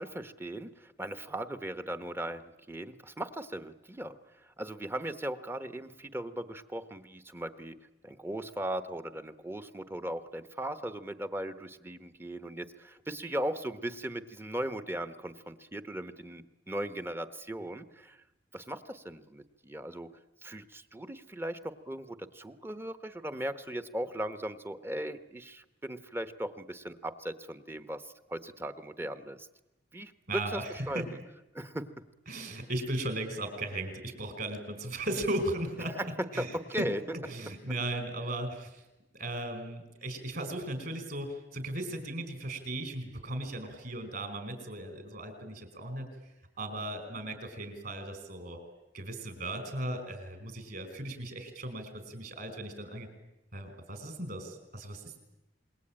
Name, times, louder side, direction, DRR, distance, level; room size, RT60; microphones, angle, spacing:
voice 1, 0.0-18.2 18.5-20.1 20.4-29.5 29.9-31.2 31.5-32.1 36.0-37.0, right 1 dB, 10° right, 11 dB, 1.0 m, -38 dB
voice 2, 30.3-31.0 32.3-36.9 37.2-38.8 39.2-46.1 46.6-48.6 48.9-53.1 53.5-55.2, right 1 dB, 50° right, 8 dB, 5.2 m, -37 dB
27.0 x 21.5 x 8.9 m, 0.94 s
head